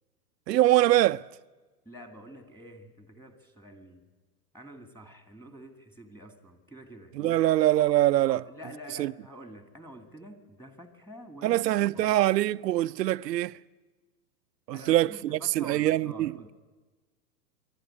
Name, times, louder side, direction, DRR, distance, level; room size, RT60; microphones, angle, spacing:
voice 1, 0.5-1.3 7.1-8.4 9.0-9.1 11.4-13.6 14.7-16.3, right 14 dB, 90° right, 0.6 m, -23 dB
voice 2, 1.9-4.1 4.5-7.4 8.2-11.6 11.9-12.1 14.7-16.5, equal, 5° left, 2.0 m, -47 dB
25.5 x 12.5 x 9.7 m
hypercardioid pair, 125°, 48 cm